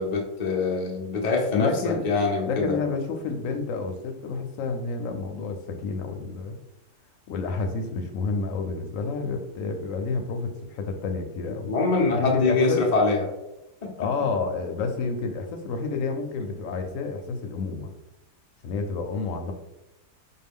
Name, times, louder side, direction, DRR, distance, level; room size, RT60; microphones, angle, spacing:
voice 1, 0.0-2.8 11.6-13.2 13.8-13.9, left 3 dB, 90° left, -1 dB, 0.3 m, -24 dB
voice 2, 1.5-2.0 2.5-6.6 7.3-11.7 12.1-12.9 14.0-17.9 18.6-19.5, left 4 dB, 65° left, 5 dB, 0.8 m, -29 dB
4.4 x 2.3 x 3.6 m, 0.95 s
omnidirectional pair, 1.7 m